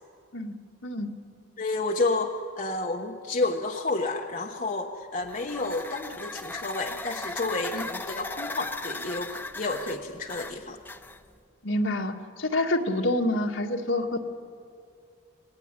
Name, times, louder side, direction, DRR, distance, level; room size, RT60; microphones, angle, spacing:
voice 1, 1.6-10.8, left 3 dB, 40° left, 2 dB, 1.2 m, -30 dB
sound 1, 5.2-11.4, left 2 dB, 10° left, 0.8 m, -38 dB
voice 2, 11.6-14.2, left 1 dB, 70° left, 3 dB, 1.9 m, -27 dB
25.5 x 18.5 x 9.9 m, 2.3 s
head